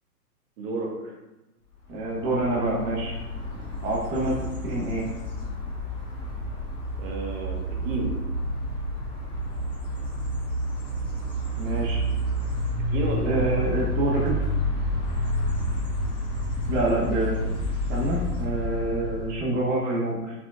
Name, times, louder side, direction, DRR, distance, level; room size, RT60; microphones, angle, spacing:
voice 1, 0.6-1.1 7.0-7.6 7.8-8.1 12.9-13.7, right 3 dB, 55° right, 0 dB, 1.2 m, -31 dB
sound 1, 1.9-19.5, equal, 10° left, 1.1 m, -29 dB
voice 2, 1.9-3.1 3.8-5.1 11.6-12.0 13.2-14.5 16.7-20.3, right 2 dB, 30° right, -5 dB, 0.9 m, -27 dB
4.9 x 3.5 x 2.3 m, 1.0 s
hypercardioid pair, 130°, 48 cm